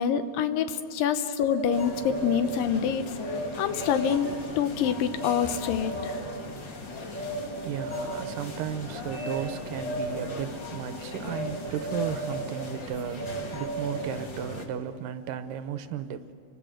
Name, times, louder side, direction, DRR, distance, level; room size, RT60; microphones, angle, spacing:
voice 1, 0.0-3.1 3.6-6.2, left 8 dB, 90° left, 9 dB, 2.7 m, -26 dB
sound 1, 1.5-2.6 3.2-3.5 3.8-4.4 5.2-5.4 5.8-6.3 7.1-7.4 7.7-8.4 9.1-9.4 9.7-10.4 11.3-11.5 11.8-12.6 13.2-14.2, right 2 dB, 55° right, 2.7 m, -34 dB
sound 2, 1.7-14.7, left 3 dB, 40° left, 2.2 m, -39 dB
voice 2, 7.0-16.3, right 9 dB, 85° right, 10 dB, 2.7 m, -35 dB
29.0 x 24.5 x 6.5 m, 2.4 s
omnidirectional pair, 3.8 m